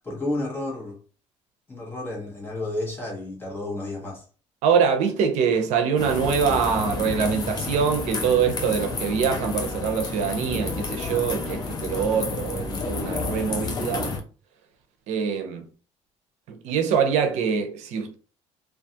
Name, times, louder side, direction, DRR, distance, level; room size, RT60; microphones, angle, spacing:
voice 1, 0.0-1.0 1.7-4.2, left 2 dB, 20° left, 0.9 m, -31 dB
voice 2, 4.6-14.2 15.1-15.7 16.5-18.1, right 6 dB, 80° right, 0.5 m, -24 dB
sound 1, 6.0-14.2, left 4 dB, 35° left, 0.5 m, -30 dB
2.4 x 2.3 x 2.7 m
cardioid pair, 145°, 12 cm